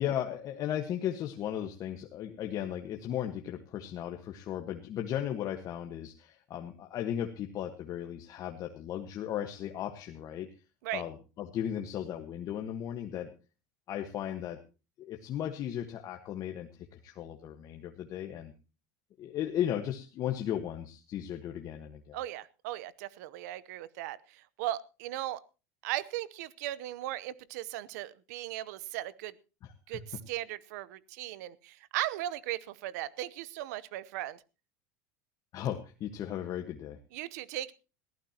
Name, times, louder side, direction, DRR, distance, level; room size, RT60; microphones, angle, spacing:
voice 1, 0.0-10.5 10.9-13.3 13.9-14.6 15.0-18.5 19.2-22.2 29.6-30.0 35.5-37.0, left 10 dB, 40° left, 4 dB, 1.4 m, -36 dB
voice 2, 22.1-25.4 25.8-29.3 29.9-34.4 37.1-37.7, right 14 dB, 75° right, 20 dB, 0.9 m, -37 dB
21.0 x 14.5 x 2.9 m, 0.33 s
supercardioid pair, 125°, 9 cm